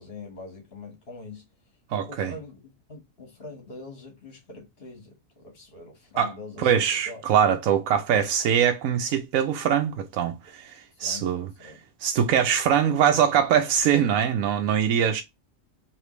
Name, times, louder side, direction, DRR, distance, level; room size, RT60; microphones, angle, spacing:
voice 1, 0.0-1.4 2.1-7.2 10.9-11.8 12.2-12.4, left 3 dB, 45° left, 1.8 m, -44 dB
voice 2, 1.9-2.3 6.2-6.3 6.6-10.7 11.0-11.5 12.0-15.2, right 8 dB, 85° right, 1.1 m, -22 dB
4.9 x 3.2 x 3.2 m
omnidirectional pair, 1.4 m